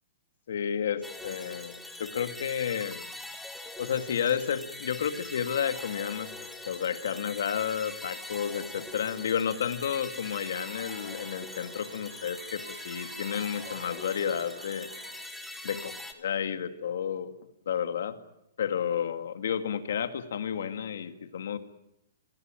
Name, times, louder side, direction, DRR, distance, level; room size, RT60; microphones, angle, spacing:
voice 1, 0.5-3.1 3.8-6.3 6.6-14.9 15.6-17.3 17.7-18.2 18.6-21.6, left 8 dB, 65° left, 9 dB, 2.2 m, -31 dB
sound 1, 1.0-16.1, left 2 dB, ahead, 1.4 m, -43 dB
sound 2, 10.2-15.3, right 6 dB, 80° right, 4.6 m, -51 dB
25.5 x 17.0 x 9.1 m, 0.82 s
hypercardioid pair, 175°, 0 cm